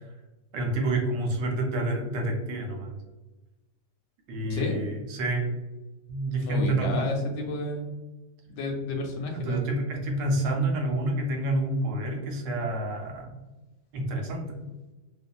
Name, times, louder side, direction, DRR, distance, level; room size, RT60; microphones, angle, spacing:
voice 1, 0.5-2.9 4.3-5.5 6.1-7.1 9.3-13.3 13.9-14.7, right 1 dB, 85° right, 1 dB, 1.3 m, -28 dB
voice 2, 4.5-4.8 6.4-8.0 8.5-9.6, left 2 dB, 85° left, 2 dB, 1.2 m, -31 dB
2.7 x 2.5 x 2.3 m, 1.1 s
omnidirectional pair, 1.9 m